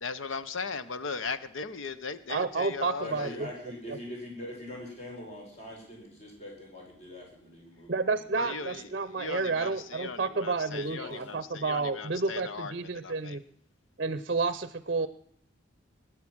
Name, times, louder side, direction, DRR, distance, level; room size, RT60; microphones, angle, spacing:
voice 1, 0.0-3.4 8.3-8.8 9.2-13.4, left 4 dB, 85° left, 13 dB, 0.9 m, -38 dB
voice 2, 2.3-3.5 3.9-4.0 7.9-13.4 14.0-15.1, right 4 dB, 50° right, 14 dB, 0.6 m, -30 dB
voice 3, 3.0-8.1 8.4-8.9 10.7-11.4, left 1 dB, 35° left, -1 dB, 5.4 m, -43 dB
20.5 x 9.1 x 6.2 m, 0.69 s
head